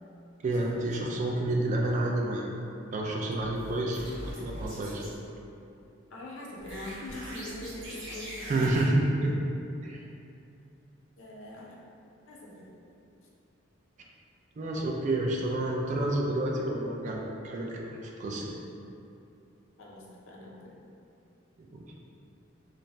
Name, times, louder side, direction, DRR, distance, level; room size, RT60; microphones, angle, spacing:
voice 1, 0.4-2.5 2.9-4.0 4.4-5.0 8.5-9.3 9.8-10.0 14.6-18.4 21.6-21.8, right 1 dB, 40° right, -2 dB, 0.3 m, -29 dB
sound 1, 3.4-5.1 6.6-8.8, equal, 70° right, 0.8 m, -42 dB
voice 2, 6.1-8.8 11.2-11.8 12.3-12.7 19.8-20.8, left 1 dB, 90° left, -4 dB, 0.5 m, -42 dB
2.6 x 2.0 x 3.2 m, 2.7 s
head